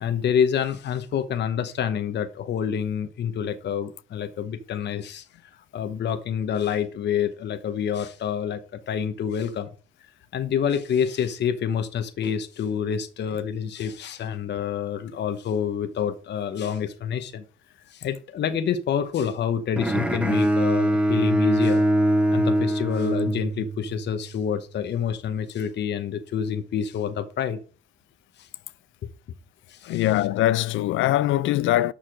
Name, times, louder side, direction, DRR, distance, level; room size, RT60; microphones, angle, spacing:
voice 1, 0.0-5.2 5.7-9.7 10.3-17.4 17.9-21.8 22.3-27.6 28.4-28.5 29.7-30.1, left 8 dB, 60° left, 1.0 m, -27 dB
Bowed string instrument, 19.8-24.0, right 1 dB, 5° right, 1.0 m, -22 dB
voice 2, 29.9-31.9, left 14 dB, 80° left, 0.4 m, -22 dB
6.8 x 5.8 x 4.9 m
cardioid pair, 90°, 20 cm